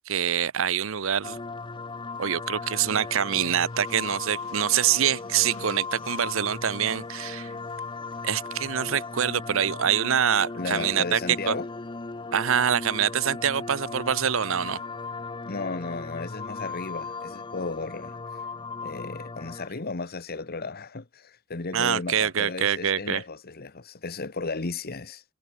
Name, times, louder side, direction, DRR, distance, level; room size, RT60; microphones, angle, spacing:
voice 1, 0.1-1.4 2.2-7.5 8.2-11.6 12.3-14.8 21.7-23.2, right 9 dB, 65° right, 0.7 m, -25 dB
sound 1, 1.2-19.7, left 4 dB, 25° left, 0.6 m, -37 dB
sound 2, 3.4-8.5, left 3 dB, 75° left, 7.3 m, -52 dB
voice 2, 10.6-11.7 15.4-18.2 18.8-25.2, left 3 dB, 45° left, 1.1 m, -34 dB
head